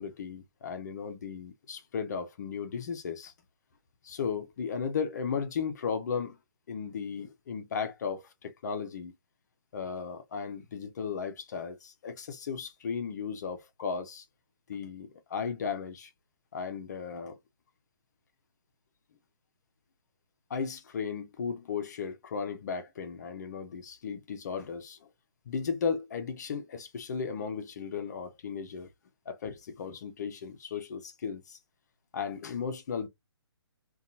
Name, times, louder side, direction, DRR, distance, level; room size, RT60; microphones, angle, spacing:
voice 1, 0.0-3.3 4.0-6.4 6.7-9.1 9.7-14.3 14.7-16.1 16.5-17.4 20.5-25.1 25.5-28.9 29.3-31.6 32.1-33.1, left 6 dB, 40° left, 0.4 m, -35 dB
2.6 x 2.2 x 2.5 m
figure-of-eight pair, 145°, 14 cm